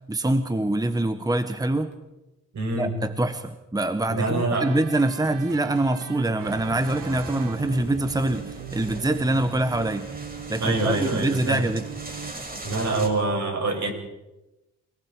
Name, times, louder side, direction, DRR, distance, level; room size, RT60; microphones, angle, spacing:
voice 1, 0.1-1.9 2.7-10.1 10.5-11.9, right 1 dB, 10° right, 9 dB, 1.5 m, -25 dB
voice 2, 2.5-2.9 4.1-4.7 10.6-11.6 12.6-13.9, right 3 dB, 60° right, 3 dB, 7.1 m, -25 dB
sound 1, 4.5-12.3, right 8 dB, 80° right, 2.1 m, -39 dB
sound 2, 6.4-13.1, right 2 dB, 25° right, 6.8 m, -40 dB
29.0 x 19.0 x 4.8 m, 1.0 s
supercardioid pair, 60°, 32 cm